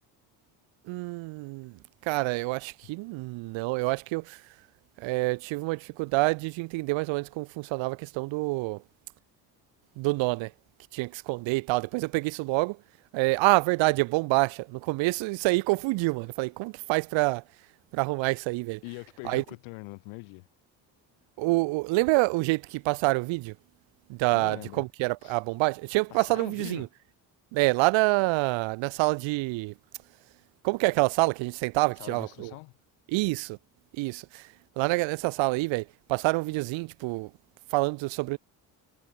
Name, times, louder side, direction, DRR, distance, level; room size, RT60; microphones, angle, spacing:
voice 1, 0.9-4.4 5.0-8.8 10.0-10.5 10.9-12.8 13.1-17.4 17.9-18.8 19.2-19.4 21.4-23.5 24.1-26.9 27.5-29.7 30.6-32.5 33.1-33.6 34.0-34.5 34.8-37.3 37.7-38.4, right 23 dB, 70° right, 0.6 m, -27 dB
voice 2, 18.8-20.5 24.3-24.9 25.2-25.4 26.1-26.9 32.0-32.7, left 29 dB, 85° left, 4.8 m, -42 dB
supercardioid pair, 60°, 47 cm